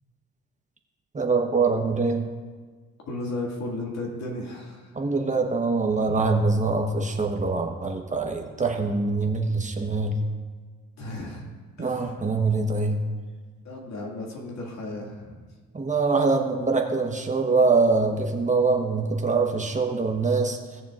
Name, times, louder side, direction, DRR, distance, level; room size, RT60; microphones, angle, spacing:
voice 1, 1.1-2.2 4.9-10.2 11.8-13.0 15.7-20.6, right 3 dB, 25° right, 2 dB, 1.1 m, -24 dB
voice 2, 3.1-5.1 11.0-11.5 11.8-12.2 13.6-15.4, left 2 dB, 60° left, -1 dB, 2.2 m, -34 dB
18.0 x 7.0 x 2.5 m, 1.4 s
cardioid pair, 90°, 30 cm